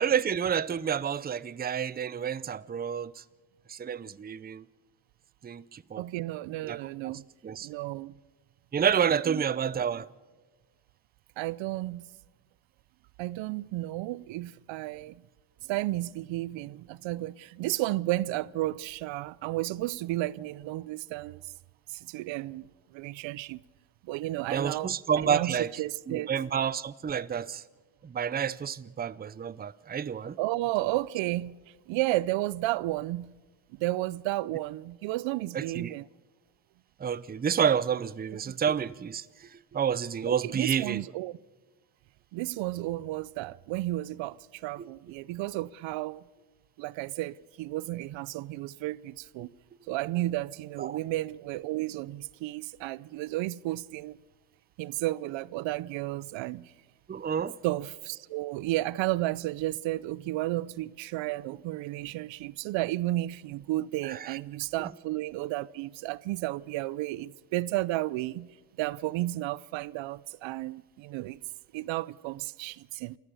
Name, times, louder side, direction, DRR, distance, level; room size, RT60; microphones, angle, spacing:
voice 1, 0.0-3.2 3.7-4.6 5.4-6.1 6.6-7.1 7.4-7.7 8.7-10.1 24.5-25.7 26.1-27.6 28.0-30.4 35.5-35.9 37.0-41.0 44.8-44.9 50.8-51.0 57.1-57.6 64.0-64.4 64.8-64.9, right 8 dB, 20° right, 0.6 m, -29 dB
voice 2, 6.0-7.2 7.6-8.1 9.2-9.4 11.4-12.1 13.2-15.1 15.7-21.4 21.9-22.7 22.9-23.6 24.0-26.3 30.4-31.6 31.9-33.3 33.7-36.0 38.5-38.6 40.3-41.4 42.3-46.2 46.8-49.5 49.9-54.2 54.8-56.7 57.6-68.5 68.8-71.4 71.7-73.2, right 17 dB, 80° right, 0.6 m, -32 dB
28.0 x 14.5 x 6.9 m
cardioid pair, 90°, 45 cm